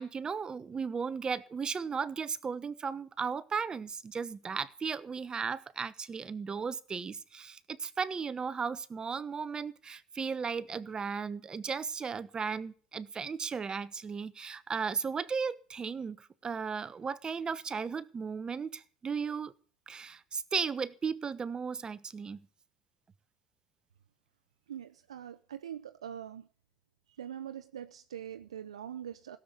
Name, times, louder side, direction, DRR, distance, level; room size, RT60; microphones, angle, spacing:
voice 1, 0.0-19.5 19.9-22.4, right 5 dB, 25° right, 1.0 m, -35 dB
voice 2, 24.7-26.5 27.2-29.4, right 9 dB, 85° right, 0.6 m, -43 dB
17.0 x 7.4 x 8.1 m
hypercardioid pair, 75°, 3 cm